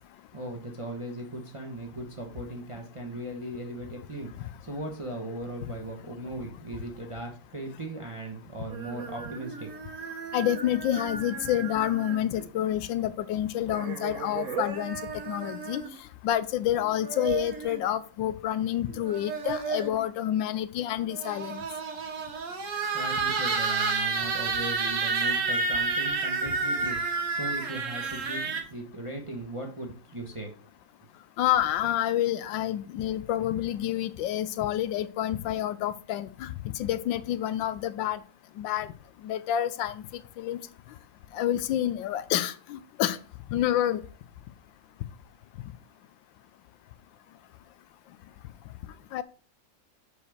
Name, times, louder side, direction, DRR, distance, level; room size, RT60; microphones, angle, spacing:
voice 1, 0.3-9.7 22.9-27.0 27.3-30.5, right 1 dB, 20° right, 0.9 m, -38 dB
sound 1, 8.7-12.4 13.7-16.0 16.8-17.8 18.9-20.1 21.1-28.6, right 4 dB, 45° right, 1.4 m, -31 dB
voice 2, 10.3-15.0 15.3-15.8 16.2-21.6 31.4-36.5 36.8-38.2 38.6-38.9 39.2-40.0 40.4-40.6 41.3-43.2 43.5-44.0 49.1-49.2, left 11 dB, 85° left, 1.3 m, -28 dB
5.1 x 4.9 x 6.4 m
omnidirectional pair, 2.0 m